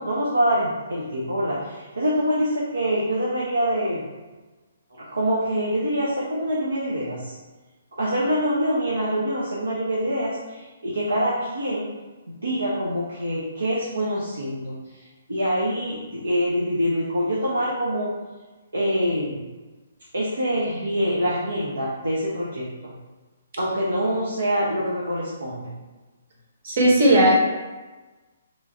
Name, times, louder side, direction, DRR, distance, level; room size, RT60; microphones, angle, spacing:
voice 1, 0.0-4.0 4.9-7.4 7.9-11.9 12.4-18.2 18.7-19.3 20.1-22.9 23.6-25.7, equal, 80° right, -5 dB, 0.7 m, -25 dB
voice 2, 26.6-27.3, right 1 dB, 50° right, -3 dB, 1.1 m, -16 dB
3.2 x 2.3 x 4.0 m, 1.2 s
figure-of-eight pair, 130°, 0 cm